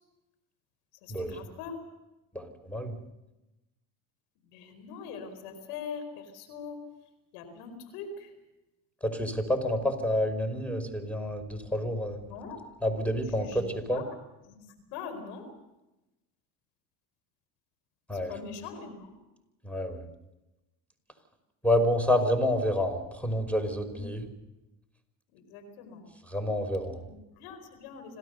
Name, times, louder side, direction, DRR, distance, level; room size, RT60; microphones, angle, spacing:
voice 1, 1.0-1.8 4.4-6.8 7.3-8.3 12.2-12.6 13.2-13.6 13.9-14.1 14.4-14.6 14.9-15.5 18.3-19.1 23.9-24.1 25.3-26.0 27.0-28.2, left 5 dB, 85° left, 8 dB, 4.7 m, -42 dB
voice 2, 2.3-3.0 9.0-12.2 12.8-14.0 18.1-18.3 19.6-20.0 21.6-24.2 26.3-27.0, left 1 dB, 5° left, 9 dB, 5.3 m, -28 dB
27.0 x 17.5 x 6.9 m, 0.97 s
supercardioid pair, 80°, 41 cm